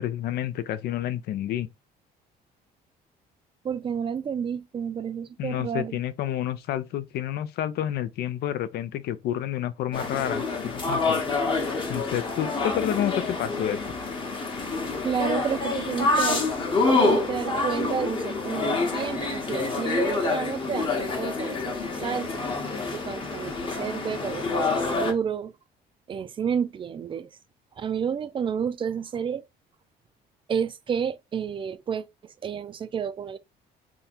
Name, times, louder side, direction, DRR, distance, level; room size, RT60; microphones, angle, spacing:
voice 1, 0.0-1.7 5.4-11.2 11.9-13.8, left 11 dB, 70° left, 0.5 m, -29 dB
voice 2, 3.6-6.0 15.0-16.4 16.9-22.4 22.9-25.5 26.1-27.3 27.8-29.4 30.5-33.4, right 7 dB, 30° right, 0.4 m, -30 dB
sound 1, 9.9-25.1, left 3 dB, 30° left, 1.0 m, -27 dB
3.6 x 2.2 x 4.3 m
cardioid pair, 110°, 17 cm